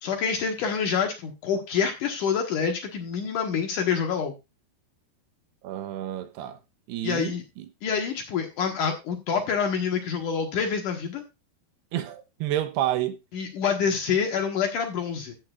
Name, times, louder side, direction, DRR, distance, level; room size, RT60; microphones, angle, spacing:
voice 1, 0.0-4.3 7.0-7.4 7.8-11.2 13.3-15.4, left 6 dB, 60° left, 2.5 m, -27 dB
voice 2, 5.6-6.6 6.9-7.7 11.9-13.2, right 12 dB, 80° right, 2.8 m, -30 dB
14.5 x 8.8 x 2.4 m
omnidirectional pair, 4.9 m